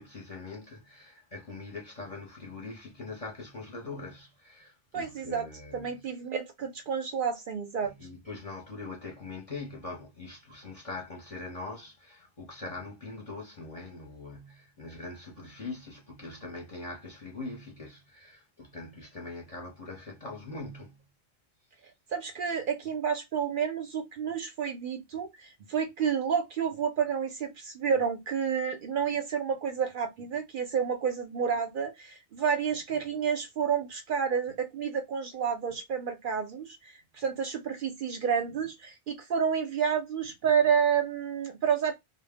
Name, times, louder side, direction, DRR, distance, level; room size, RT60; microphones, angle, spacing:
voice 1, 0.0-6.0 7.8-21.0, left 3 dB, 40° left, 0.7 m, -42 dB
voice 2, 4.9-5.5 5.7-7.9 22.1-41.9, right 7 dB, 60° right, 0.6 m, -30 dB
2.1 x 2.0 x 3.3 m
omnidirectional pair, 1.1 m